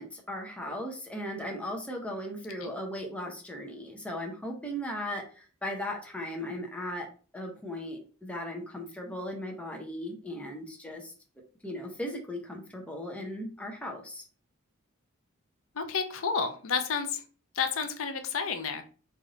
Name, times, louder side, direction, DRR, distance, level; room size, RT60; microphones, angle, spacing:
voice 1, 0.0-7.1 7.3-11.1 11.6-14.2, equal, 5° left, 1 dB, 0.7 m, -37 dB
voice 2, 15.7-17.2 17.5-18.8, left 5 dB, 65° left, 7 dB, 0.5 m, -30 dB
3.3 x 2.5 x 3.8 m, 0.39 s
head